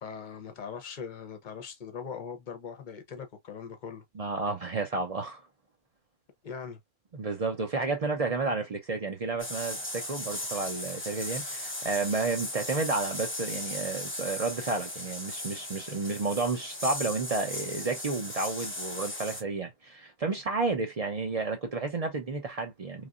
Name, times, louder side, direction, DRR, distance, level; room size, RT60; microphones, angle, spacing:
voice 1, 0.0-4.0 6.4-6.8, left 6 dB, 45° left, 0.7 m, -40 dB
voice 2, 4.2-5.4 7.1-23.1, right 3 dB, 45° right, 0.5 m, -31 dB
sound 1, 9.4-19.4, left 1 dB, 10° left, 0.7 m, -37 dB
3.2 x 2.4 x 2.3 m
omnidirectional pair, 1.3 m